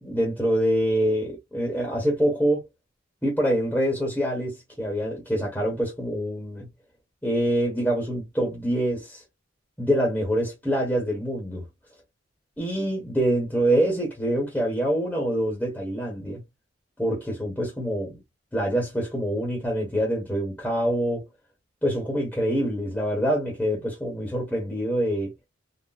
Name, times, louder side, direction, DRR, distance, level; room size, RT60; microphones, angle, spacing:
voice 1, 0.0-2.6 3.2-6.7 7.2-9.2 9.8-11.6 12.6-16.4 17.0-18.2 18.5-21.2 21.8-25.3, equal, 5° left, 1.0 m, -25 dB
4.0 x 2.1 x 2.3 m
head